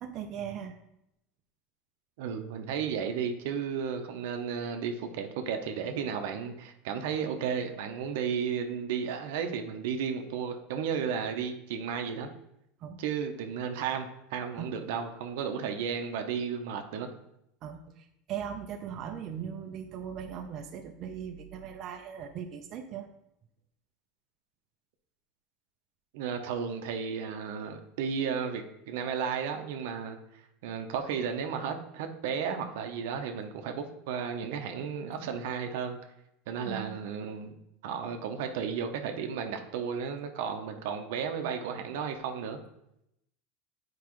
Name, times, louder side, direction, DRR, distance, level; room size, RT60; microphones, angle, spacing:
voice 1, 0.0-0.7 12.8-13.0 14.6-14.7 17.6-23.1 36.6-37.0, right 8 dB, 45° right, 4 dB, 0.6 m, -39 dB
voice 2, 2.2-12.3 13.0-17.1 26.1-30.2 30.6-36.0 36.5-37.6 37.8-42.6, right 7 dB, 75° right, 6 dB, 0.8 m, -33 dB
8.3 x 4.7 x 3.1 m, 0.81 s
supercardioid pair, 120°, 0 cm